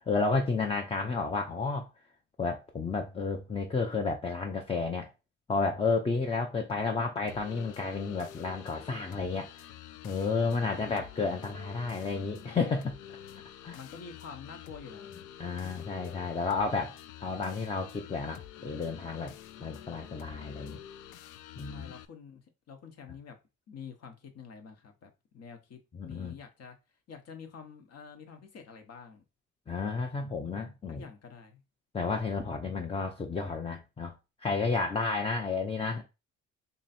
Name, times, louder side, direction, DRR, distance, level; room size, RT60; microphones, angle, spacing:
voice 1, 0.1-1.9 2.4-5.1 5.5-9.5 10.0-12.9 13.6-13.8 15.4-16.9 17.2-19.3 19.6-20.8 21.6-21.9 25.9-26.3 29.7-31.0 31.9-34.1 34.4-36.0, left 4 dB, 20° left, 0.5 m, -31 dB
sound 1, 7.3-22.0, left 11 dB, 80° left, 0.4 m, -48 dB
voice 2, 13.7-15.1 15.5-15.9 21.7-23.4 23.7-26.8 27.1-29.2 30.9-31.6, left 6 dB, 55° left, 1.0 m, -48 dB
3.0 x 2.6 x 4.1 m
cardioid pair, 90°, 30 cm